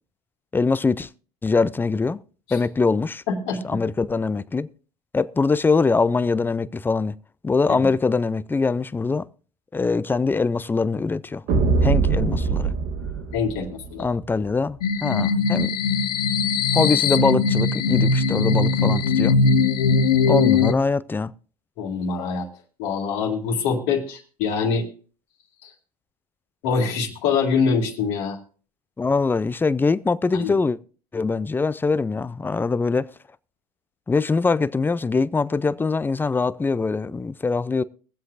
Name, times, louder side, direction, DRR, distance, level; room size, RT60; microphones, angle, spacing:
voice 1, 0.5-1.1 1.4-2.2 2.5-3.2 3.6-4.7 5.1-7.1 7.4-9.3 9.7-11.4 11.8-12.7 14.0-15.9 16.7-19.4 20.3-21.3 29.0-30.8 31.1-33.1 34.1-37.8, left 4 dB, 10° left, 0.4 m, -23 dB
voice 2, 3.3-3.6 7.7-7.8 13.3-14.1 21.8-22.5 22.8-24.9 25.6-25.7 26.6-28.4 30.3-30.5, left 5 dB, 65° left, 2.1 m, -24 dB
sound 1, 11.5-14.1, right 4 dB, 60° right, 1.8 m, -22 dB
sound 2, 14.8-20.7, left 4 dB, 80° left, 0.8 m, -20 dB
23.0 x 7.7 x 2.5 m
hypercardioid pair, 85°, 19 cm